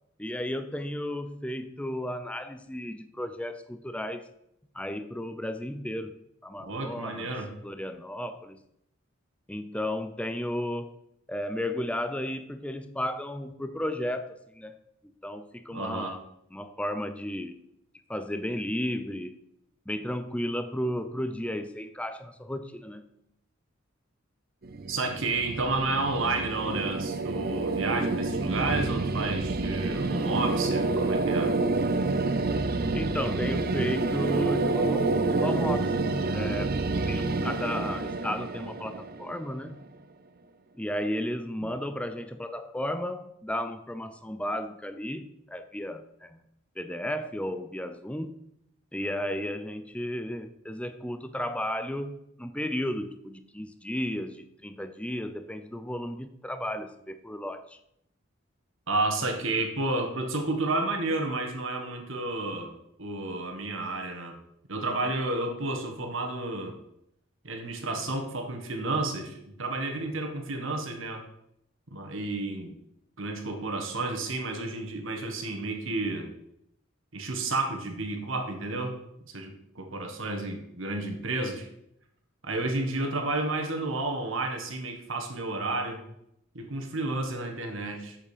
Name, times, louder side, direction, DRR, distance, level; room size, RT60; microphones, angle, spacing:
voice 1, 0.2-4.3 4.7-7.3 7.6-8.6 9.5-10.9 11.3-14.8 15.2-16.2 16.5-17.6 18.1-19.4 19.9-23.0 32.9-36.0 36.3-36.8 37.1-39.8 40.7-46.4 46.8-48.4 48.9-57.8, left 1 dB, 5° left, 10 dB, 0.5 m, -34 dB
voice 2, 6.7-7.5 15.7-16.2 24.9-31.5 41.6-41.7 58.9-62.7 63.0-64.4 64.7-66.8 67.4-71.2 71.9-72.7 73.2-76.3 77.1-79.0 79.2-81.7 82.4-86.0 86.5-88.2, right 2 dB, 70° right, 4 dB, 1.6 m, -31 dB
sound 1, 24.6-39.7, right 3 dB, 45° right, 0.6 m, -28 dB
7.5 x 7.0 x 5.0 m, 0.77 s
head